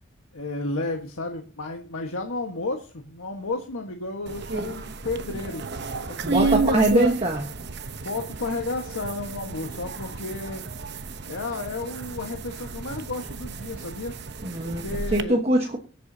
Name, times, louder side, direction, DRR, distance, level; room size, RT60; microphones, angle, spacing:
voice 1, 0.3-5.7 6.0-7.0 8.0-10.7 11.2-14.2 14.6-15.4, left 2 dB, 85° left, 2 dB, 1.5 m, -32 dB
sound 1, 4.3-15.2, right 3 dB, 55° right, 0.9 m, -32 dB
voice 2, 6.2-7.5 14.4-14.8 15.1-15.8, right 1 dB, 30° right, 2 dB, 1.3 m, -22 dB
24.0 x 8.3 x 2.8 m, 0.36 s
head